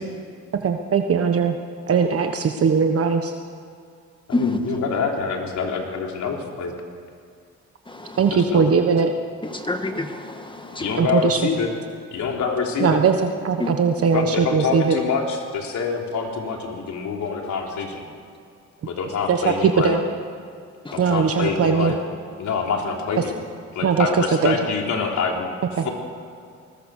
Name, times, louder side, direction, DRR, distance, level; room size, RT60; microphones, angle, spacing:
voice 1, 0.6-1.6 1.9-3.3 8.2-9.1 11.0-11.4 12.8-15.0 19.3-20.0 21.0-21.9 23.2-23.3 23.8-24.6 25.8-25.9, right 6 dB, 50° right, 1.3 m, -20 dB
voice 2, 4.3-4.8 7.9-8.4 9.4-11.0 13.6-13.8 20.8-21.2, left 2 dB, 15° left, 2.0 m, -28 dB
voice 3, 4.8-6.7 8.3-8.7 10.8-11.7 12.1-13.0 14.1-18.0 18.8-20.0 20.9-22.0 22.4-23.3 23.7-25.5 25.8-25.9, left 5 dB, 70° left, 3.7 m, -26 dB
21.0 x 20.0 x 6.6 m
cardioid pair, 90°, 30 cm